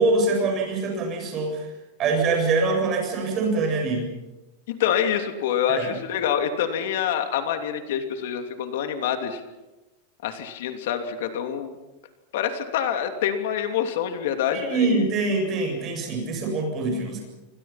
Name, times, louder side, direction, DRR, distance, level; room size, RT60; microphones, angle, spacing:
voice 1, 0.0-1.7 2.0-4.1 5.7-5.9 14.5-17.2, right 3 dB, 25° right, 3 dB, 7.5 m, -24 dB
voice 2, 4.7-9.4 10.2-11.7 12.3-15.1, left 9 dB, 60° left, 6 dB, 2.9 m, -26 dB
28.5 x 25.0 x 5.9 m, 1.1 s
supercardioid pair, 175°, 0 cm